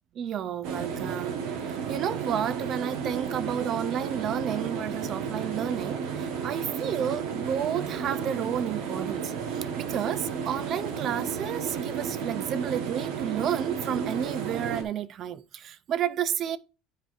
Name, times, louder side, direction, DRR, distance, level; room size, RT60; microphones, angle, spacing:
voice 1, 0.2-1.4 1.7-16.6, right 9 dB, 40° right, 0.4 m, -31 dB
sound 1, 0.6-14.8, right 6 dB, 70° right, 1.1 m, -33 dB
10.0 x 4.8 x 2.5 m
cardioid pair, 145°, 0 cm